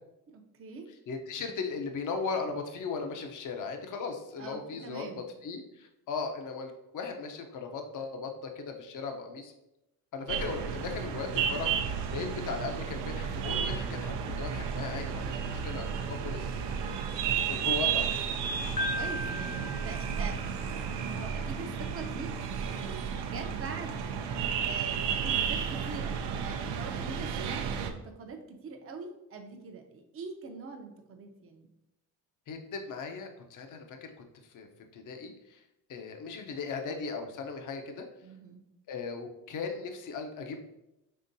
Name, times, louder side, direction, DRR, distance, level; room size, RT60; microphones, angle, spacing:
voice 1, 0.3-0.9 4.4-5.2 10.3-10.5 16.6-17.1 18.7-20.6 21.0-24.1 24.5-31.7 38.2-38.6, right 4 dB, 35° right, 3 dB, 0.6 m, -43 dB
voice 2, 1.1-9.5 10.1-11.8 12.1-16.6 17.4-18.1 32.5-34.1 34.5-34.7 34.9-35.6 35.9-38.1 38.9-40.6, left 4 dB, 50° left, 4 dB, 0.7 m, -37 dB
sound 1, 10.3-27.9, right 7 dB, 80° right, 0.6 m, -32 dB
Piano, 18.8-20.9, left 1 dB, 20° left, 0.3 m, -36 dB
5.6 x 3.5 x 2.6 m, 0.88 s
cardioid pair, 110°, 41 cm